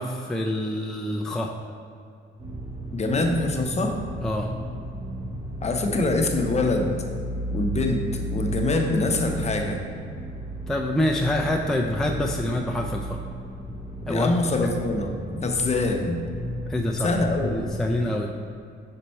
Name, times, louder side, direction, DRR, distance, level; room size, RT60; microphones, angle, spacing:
voice 1, 0.0-1.5 4.2-4.5 10.7-13.2 14.1-14.3 14.6-14.7 15.3-15.4 16.7-17.1 17.4-18.3, left 1 dB, ahead, 0 dB, 0.4 m, -26 dB
sound 1, 2.4-18.0, right 1 dB, 25° right, 0.9 m, -34 dB
voice 2, 2.9-4.0 5.6-6.9 7.5-9.8 14.1-15.1 15.4-16.2 17.0-17.5, left 2 dB, 35° left, 3 dB, 0.7 m, -24 dB
5.3 x 4.4 x 4.2 m, 2.4 s
cardioid pair, 90°, 20 cm